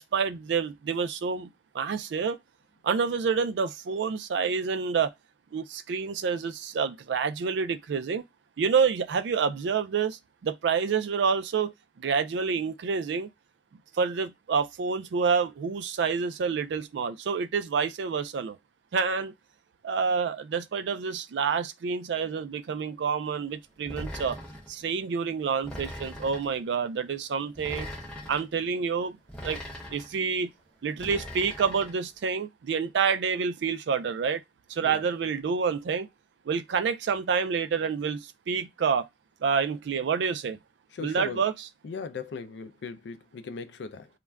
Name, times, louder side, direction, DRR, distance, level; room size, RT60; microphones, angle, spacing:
voice 1, 0.0-1.5 1.7-2.4 2.8-5.1 5.5-8.2 8.6-13.3 14.0-18.6 18.9-19.3 19.8-24.4 24.7-27.9 28.3-29.2 29.4-29.6 29.9-30.5 30.8-34.4 34.7-36.1 36.5-39.1 39.4-40.6 41.0-41.7, right 6 dB, 70° right, 0.3 m, -28 dB
sound 1, 23.9-24.7 25.6-26.6 27.6-28.4 29.3-30.2 31.0-32.0, equal, 5° left, 0.8 m, -40 dB
voice 2, 40.9-41.4 41.8-44.1, left 5 dB, 70° left, 0.4 m, -38 dB
2.4 x 2.2 x 3.2 m
head